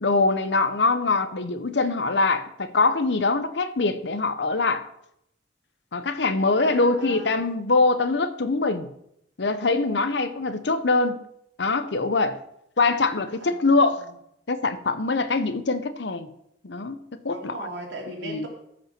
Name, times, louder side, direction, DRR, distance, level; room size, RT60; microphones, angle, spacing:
voice 1, 0.0-4.9 5.9-8.9 9.4-11.2 11.6-12.4 12.8-14.0 14.5-16.3 16.6-17.0 17.2-17.7 18.2-18.5, left 3 dB, 70° left, 0.8 m, -23 dB
voice 2, 6.6-7.4 13.4-13.7 14.0-14.1 17.3-18.5, right 2 dB, 75° right, 2.8 m, -38 dB
14.0 x 5.4 x 6.0 m
head